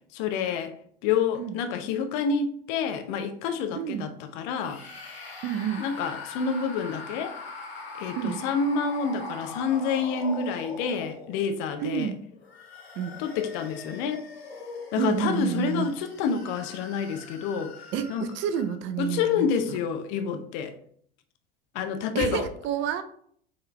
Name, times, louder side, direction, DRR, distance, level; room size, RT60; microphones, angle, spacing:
voice 1, 0.1-0.7 1.0-4.1 4.3-4.8 5.8-7.4 8.0-12.1 13.2-14.2 14.9-17.7 18.1-18.3 19.0-20.7 21.7-22.5, left 6 dB, 50° left, 8 dB, 0.7 m, -28 dB
voice 2, 3.8-4.1 5.4-5.8 8.2-8.4 11.8-12.2 13.0-13.2 15.0-15.9 17.9-19.8 22.1-23.0, right 9 dB, 40° right, 10 dB, 0.5 m, -29 dB
sound 1, 4.5-11.6 12.3-18.8, left 3 dB, 80° left, 0.7 m, -42 dB
4.7 x 3.2 x 3.2 m, 0.63 s
figure-of-eight pair, 75°, 31 cm